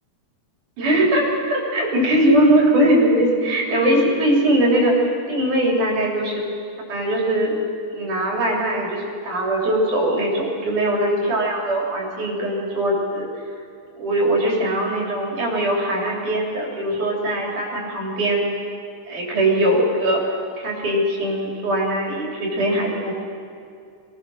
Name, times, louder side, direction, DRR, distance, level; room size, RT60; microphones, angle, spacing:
voice 1, 0.8-6.4 6.9-7.6 7.9-13.2 14.0-18.5 19.1-20.2 20.6-23.1, right 1 dB, 80° right, -2 dB, 5.0 m, -21 dB
23.0 x 18.0 x 6.4 m, 2.4 s
omnidirectional pair, 3.5 m